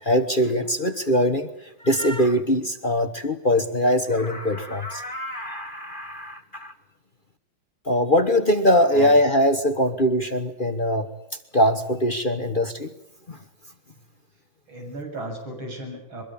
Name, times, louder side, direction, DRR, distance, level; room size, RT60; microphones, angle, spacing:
voice 1, 0.0-6.7 7.8-11.1 11.5-12.9 13.3-13.4, equal, 30° left, 9 dB, 1.4 m, -22 dB
voice 2, 8.8-9.1 14.7-16.2, right 1 dB, 90° right, 2 dB, 8.3 m, -35 dB
24.0 x 23.0 x 8.7 m, 0.80 s
omnidirectional pair, 2.1 m